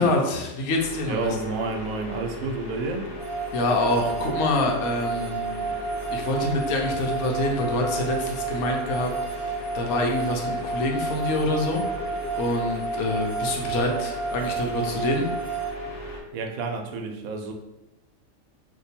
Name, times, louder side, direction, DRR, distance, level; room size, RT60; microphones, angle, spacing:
voice 1, 0.0-1.3 3.5-5.7 6.1-11.8 12.4-15.3, left 2 dB, 90° left, 2 dB, 1.1 m, -26 dB
sound 1, 0.7-16.2, left 1 dB, 60° left, 0.9 m, -37 dB
voice 2, 1.1-3.1 16.3-17.5, right 3 dB, 80° right, 3 dB, 1.0 m, -30 dB
sound 2, 3.2-15.7, right 5 dB, 60° right, 0.3 m, -31 dB
2.9 x 2.2 x 4.1 m, 0.95 s
omnidirectional pair, 1.5 m